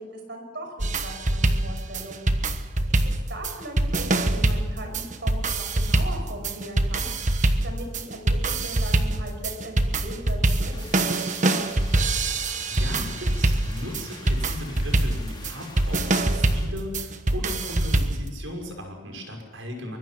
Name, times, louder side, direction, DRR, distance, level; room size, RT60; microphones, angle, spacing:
voice 1, 0.0-2.3 3.0-7.1 7.4-11.3, right 1 dB, 60° right, 4 dB, 6.1 m, -39 dB
sound 1, 0.8-18.3, right 2 dB, 40° right, 1.3 m, -24 dB
sound 2, 10.7-16.7, left 3 dB, 25° left, 3.9 m, -45 dB
voice 2, 12.3-20.0, left 1 dB, 80° right, 3 dB, 6.0 m, -37 dB
24.0 x 21.5 x 6.0 m, 1.3 s
head